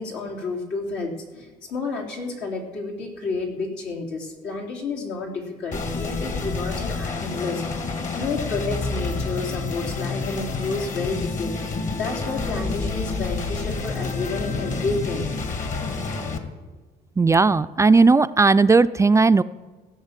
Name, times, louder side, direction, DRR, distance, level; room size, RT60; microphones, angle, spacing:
voice 1, 0.0-11.6 11.9-15.3, left 3 dB, 80° left, -1 dB, 3.6 m, -30 dB
sound 1, 5.7-16.4, left 4 dB, 50° left, 1.9 m, -28 dB
voice 2, 17.2-19.4, right 4 dB, 20° right, 12 dB, 0.3 m, -16 dB
16.5 x 8.0 x 7.5 m, 1.4 s
cardioid pair, 110°, 17 cm